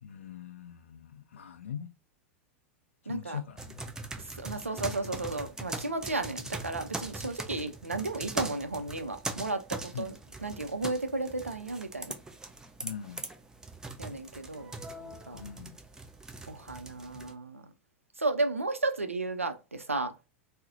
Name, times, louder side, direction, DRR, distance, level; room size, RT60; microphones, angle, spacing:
voice 1, 0.0-1.9 3.0-3.9 9.9-10.1 12.8-13.3 15.3-15.8, left 8 dB, 65° left, 0.4 m, -42 dB
voice 2, 3.1-3.4 4.2-10.1 10.4-12.1 14.0-15.4 16.5-17.6 18.2-20.1, right 2 dB, 85° right, 0.4 m, -33 dB
sound 1, 3.6-17.3, right 2 dB, 10° right, 0.4 m, -41 dB
3.8 x 2.1 x 2.6 m
figure-of-eight pair, 90°, 7 cm